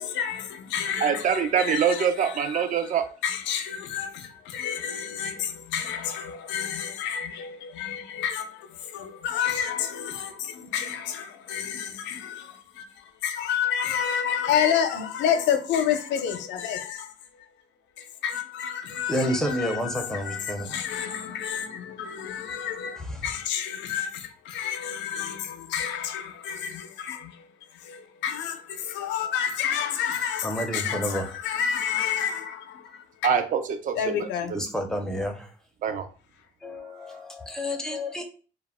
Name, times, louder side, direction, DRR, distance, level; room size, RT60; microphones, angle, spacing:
voice 1, 0.0-2.6 3.2-17.1 18.0-27.5 27.7-33.0 33.9-34.5, left 8 dB, 80° left, 0.5 m, -30 dB
voice 2, 1.0-3.0 33.2-34.3 35.8-36.1, right 7 dB, 45° right, 0.4 m, -24 dB
voice 3, 19.1-20.8 23.0-23.3 30.4-31.3 34.5-35.5 36.6-38.2, equal, 5° left, 0.5 m, -30 dB
2.2 x 2.0 x 3.4 m
cardioid pair, 95°, 19 cm